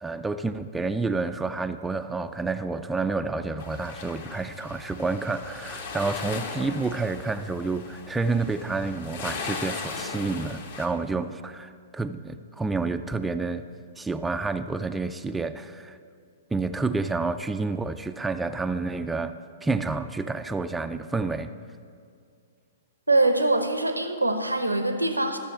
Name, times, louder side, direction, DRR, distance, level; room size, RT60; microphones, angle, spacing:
voice 1, 0.0-13.6 14.0-16.0 16.5-19.3 19.6-21.5, right 3 dB, 5° right, 8 dB, 0.3 m, -29 dB
sound 1, 3.6-10.9, left 4 dB, 55° left, 1.2 m, -38 dB
voice 2, 23.1-25.4, right 2 dB, 85° right, 7 dB, 0.8 m, -23 dB
13.5 x 6.7 x 5.7 m, 2.3 s
figure-of-eight pair, 110°, 0 cm